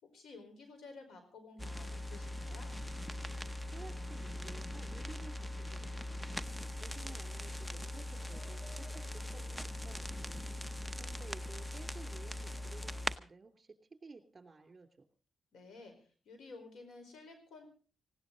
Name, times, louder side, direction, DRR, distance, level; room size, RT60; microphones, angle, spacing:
voice 1, 0.0-2.7 15.5-17.7, left 3 dB, 80° left, 7 dB, 4.7 m, -53 dB
sound 1, 1.6-13.2, left 1 dB, 10° left, 0.8 m, -41 dB
voice 2, 3.7-6.3 6.8-10.5 11.0-15.1, right 4 dB, 35° right, 7 dB, 2.8 m, -55 dB
19.0 x 16.5 x 4.0 m, 0.36 s
cardioid pair, 80°, 0 cm